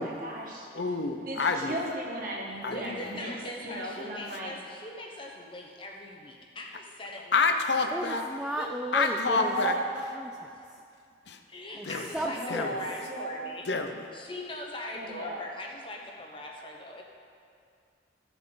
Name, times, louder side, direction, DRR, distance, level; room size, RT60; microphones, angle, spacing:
voice 1, 0.0-0.7 1.2-4.5 9.1-9.8 12.2-13.4 14.9-15.4, right 1 dB, 50° right, -2 dB, 1.6 m, -36 dB
voice 2, 0.7-1.8 2.6-3.0 7.3-8.2 8.9-9.7 11.3-11.4 11.9-12.1 12.5-12.8 13.7-14.1, left 4 dB, 70° left, 6 dB, 0.7 m, -28 dB
voice 3, 2.5-7.5 8.6-8.7 11.5-13.7 14.1-17.0, left 1 dB, 30° left, 0 dB, 1.0 m, -41 dB
voice 4, 7.9-9.6 10.1-10.8 11.8-12.7, right 1 dB, 5° right, 1 dB, 0.3 m, -35 dB
15.0 x 7.0 x 3.9 m, 2.3 s
head